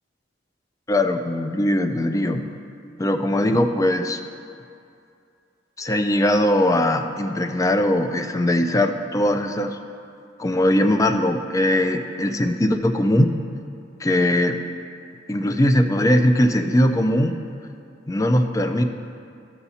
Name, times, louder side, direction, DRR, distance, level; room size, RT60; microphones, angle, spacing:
voice 1, 0.9-2.6 3.0-4.2 5.8-9.8 10.4-13.3 14.0-14.6 15.3-17.4 18.1-18.8, left 1 dB, 20° left, 7 dB, 0.4 m, -20 dB
13.0 x 7.9 x 2.8 m, 2.5 s
head